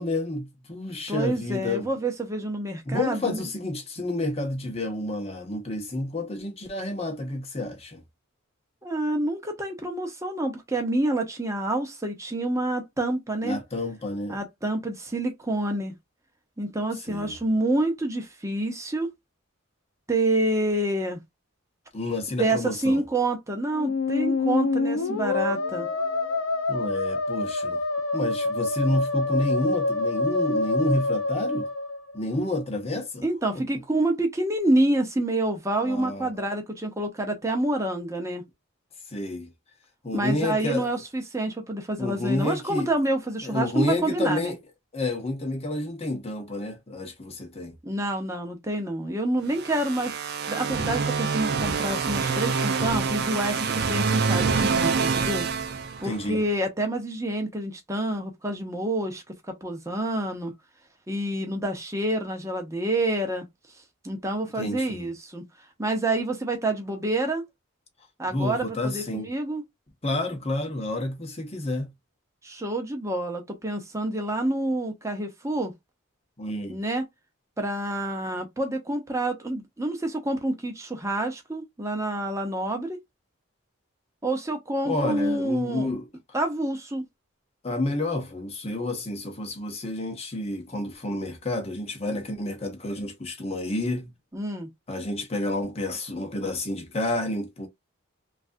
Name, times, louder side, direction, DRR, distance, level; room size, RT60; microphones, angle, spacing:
voice 1, 0.0-1.9 2.9-8.0 13.4-14.4 17.1-17.4 21.9-23.0 26.7-27.8 28.1-31.7 32.1-33.2 33.5-33.6 35.8-36.3 39.1-39.5 40.0-40.9 42.0-42.9 43.4-44.6 44.9-47.7 56.0-56.4 64.6-65.1 68.3-69.3 70.0-71.9 76.4-76.8 84.8-86.1 87.6-94.1 94.9-97.7, left 2 dB, 30° left, 0.8 m, -29 dB
voice 2, 1.1-3.4 8.8-13.6 14.3-16.0 16.6-19.1 20.1-21.2 22.4-25.9 33.2-38.4 40.1-44.5 47.8-50.1 50.5-55.5 56.0-60.5 61.1-63.4 64.0-65.4 65.8-67.4 68.2-69.6 72.4-75.7 76.7-77.0 77.6-83.0 84.2-85.9 86.3-87.0 94.3-94.7, right 1 dB, 15° right, 0.7 m, -28 dB
Musical instrument, 23.7-32.5, left 3 dB, 75° left, 0.6 m, -26 dB
sound 1, 49.5-56.4, right 5 dB, 50° right, 0.5 m, -26 dB
3.2 x 2.4 x 2.5 m
head